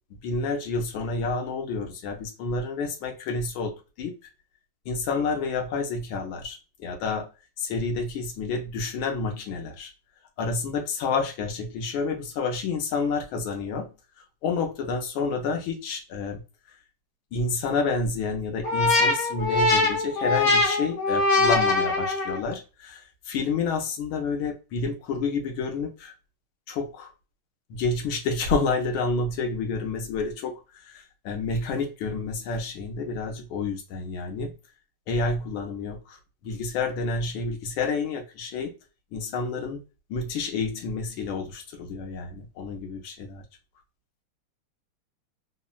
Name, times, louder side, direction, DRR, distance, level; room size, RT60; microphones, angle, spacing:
voice 1, 0.2-4.1 4.9-7.3 7.6-9.9 10.4-13.9 14.4-16.4 17.3-26.1 26.7-27.1 27.7-30.6 30.9-34.5 35.1-36.2 36.4-38.7 39.1-39.8 40.1-43.4, left 4 dB, 75° left, 1.4 m, -29 dB
sound 1, 18.6-22.5, left 3 dB, 45° left, 1.0 m, -22 dB
3.6 x 2.0 x 2.3 m
omnidirectional pair, 2.3 m